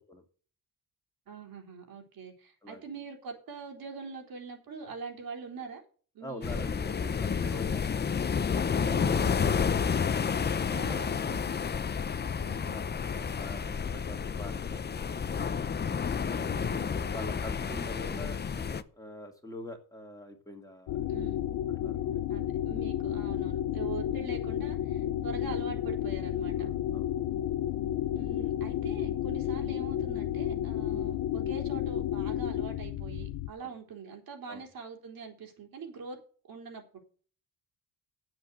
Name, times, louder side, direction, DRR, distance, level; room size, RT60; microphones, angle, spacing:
voice 1, 1.3-5.8 6.1-6.6 9.2-9.5 10.7-11.4 12.4-12.8 16.3-17.3 18.1-18.3 21.1-21.5 22.3-26.7 28.1-36.2 36.5-37.0, right 5 dB, 70° right, 2 dB, 3.7 m, -43 dB
voice 2, 6.2-8.1 12.7-15.5 16.1-16.7 17.1-21.0 21.7-22.4 26.6-27.1 30.8-31.1 33.6-33.7 34.5-34.6, left 1 dB, 10° left, 3 dB, 2.4 m, -45 dB
sound 1, 6.4-18.8, left 6 dB, 30° left, 0.7 m, -30 dB
sound 2, 20.9-33.5, left 11 dB, 70° left, 0.8 m, -32 dB
8.6 x 7.9 x 7.0 m, 0.42 s
cardioid pair, 105°, 36 cm